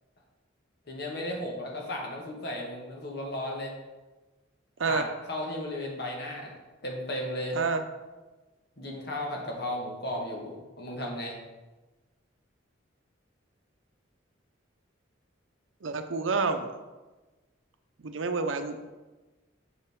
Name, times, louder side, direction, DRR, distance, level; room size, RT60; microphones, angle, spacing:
voice 1, 0.9-3.7 4.9-6.5 6.8-7.6 8.8-11.4, left 1 dB, 55° left, 0 dB, 1.5 m, -35 dB
voice 2, 15.8-16.7 18.0-18.8, right 4 dB, 75° right, 8 dB, 0.6 m, -28 dB
6.8 x 6.3 x 3.6 m, 1.2 s
head